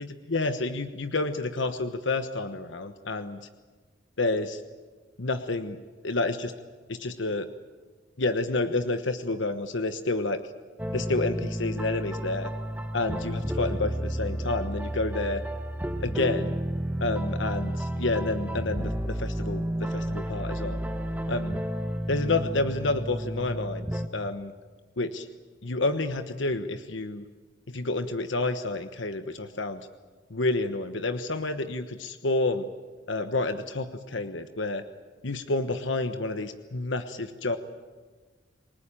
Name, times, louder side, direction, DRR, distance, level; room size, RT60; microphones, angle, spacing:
voice 1, 0.0-3.4 4.2-4.6 5.2-5.8 6.0-6.5 6.9-7.5 8.2-10.4 10.9-12.5 12.9-15.4 16.0-16.6 17.0-20.8 21.3-21.6 22.1-24.5 25.0-25.3 25.6-27.2 27.7-29.8 30.3-32.6 33.1-34.8 35.2-37.6, left 2 dB, 80° left, 9 dB, 1.2 m, -29 dB
sound 1, 10.8-24.1, right 1 dB, 10° right, 1.1 m, -31 dB
28.5 x 19.0 x 9.0 m, 1.4 s
head